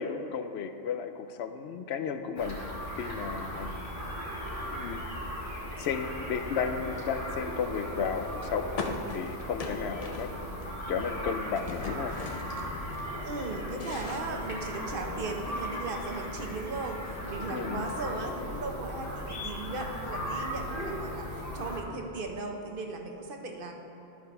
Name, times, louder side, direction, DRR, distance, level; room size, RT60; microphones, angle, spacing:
voice 1, 0.0-3.7 4.7-5.0 5.8-10.3 10.9-12.1 17.5-17.8, left 6 dB, 85° left, 9 dB, 0.8 m, -33 dB
sound 1, 2.4-21.8, equal, 60° left, 1.6 m, -37 dB
sound 2, 8.8-10.7 10.9-13.1 13.5-15.0, left 3 dB, 40° left, 0.7 m, -40 dB
voice 2, 13.2-23.7, right 3 dB, 60° right, 3 dB, 1.0 m, -37 dB
11.5 x 4.6 x 5.4 m, 3.0 s
omnidirectional pair, 1.1 m